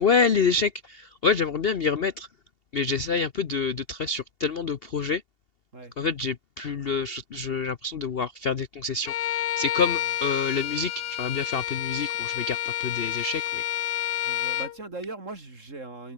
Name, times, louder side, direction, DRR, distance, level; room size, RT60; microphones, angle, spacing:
voice 1, 0.0-2.3 2.7-5.2 6.0-10.9 11.2-13.6, left 4 dB, 45° left, 0.8 m, -27 dB
Bowed string instrument, 9.1-14.8, left 12 dB, 70° left, 1.3 m, -29 dB
voice 2, 9.8-10.1 14.2-16.1, right 3 dB, 40° right, 4.1 m, -39 dB
omnidirectional pair, 2.0 m